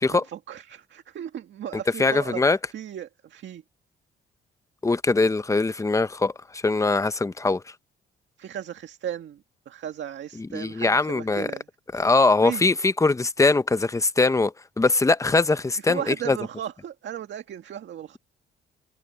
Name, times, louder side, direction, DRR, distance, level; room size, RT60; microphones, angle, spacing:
voice 1, 0.1-3.6 8.4-11.6 11.9-12.1 12.4-12.7 15.9-18.2, right 10 dB, 65° right, 1.9 m, -36 dB
voice 2, 1.7-2.6 4.8-7.6 10.4-11.5 11.9-16.4, left 3 dB, 15° left, 0.8 m, -22 dB
cardioid pair, 90°, 20 cm